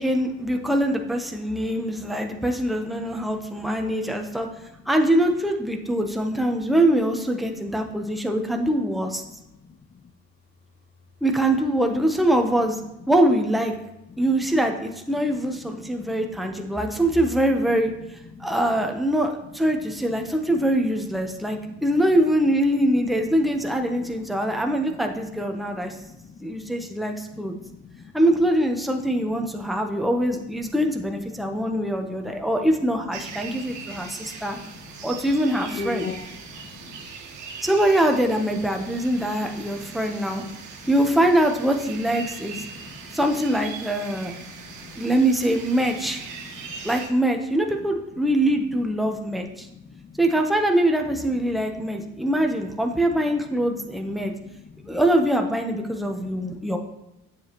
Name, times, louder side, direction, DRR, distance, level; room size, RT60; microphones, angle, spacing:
voice 1, 0.0-4.5 4.9-9.2 11.2-12.8 13.1-13.7 14.2-17.9 18.4-26.0 26.4-27.5 28.1-34.6 35.0-36.1 37.6-40.4 40.9-42.6 43.1-44.3 45.0-46.2 46.8-49.7 50.2-54.3 54.9-56.8, right 1 dB, ahead, 3 dB, 0.9 m, -23 dB
voice 2, 15.8-16.8 18.3-18.5 21.2-21.8 23.7-24.6 24.9-25.0 25.7-26.9 27.3-28.1 29.5-30.1 31.5-32.5 33.5-35.1 35.7-37.1 38.7-38.9 39.5-40.0 40.3-40.9 42.6-43.2 44.2-45.1 46.6-46.9 47.8-47.9 49.6-50.2 51.5-52.3 54.2-55.0 56.0-56.7, left 5 dB, 30° left, 7 dB, 0.5 m, -43 dB
sound 1, 33.1-47.1, right 5 dB, 80° right, 1.4 m, -40 dB
9.3 x 7.2 x 3.0 m, 0.89 s
cardioid pair, 95°, 30 cm